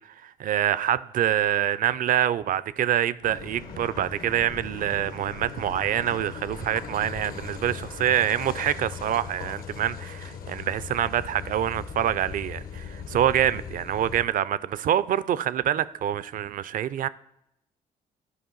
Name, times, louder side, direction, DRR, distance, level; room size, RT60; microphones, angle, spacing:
voice 1, 0.2-17.1, right 11 dB, 60° right, 0.4 m, -26 dB
Car passing by / Idling / Accelerating revving vroom, 3.2-14.2, left 6 dB, 65° left, 0.9 m, -39 dB
11.5 x 5.0 x 3.9 m
cardioid pair, 70°, 16 cm